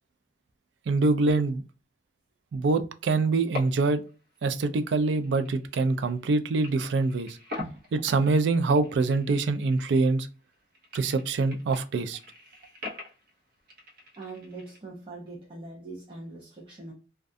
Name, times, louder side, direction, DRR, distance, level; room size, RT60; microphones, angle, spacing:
voice 1, 0.9-1.6 2.5-4.0 4.4-7.4 7.9-10.3 10.9-12.2, right 3 dB, 85° right, 0.4 m, -25 dB
sound 1, 3.3-4.1 4.4-6.3 6.6-10.2 10.5-14.8, left 2 dB, 55° right, 0.8 m, -43 dB
voice 2, 14.2-16.9, right 3 dB, 30° right, 0.6 m, -42 dB
2.3 x 2.2 x 2.5 m
head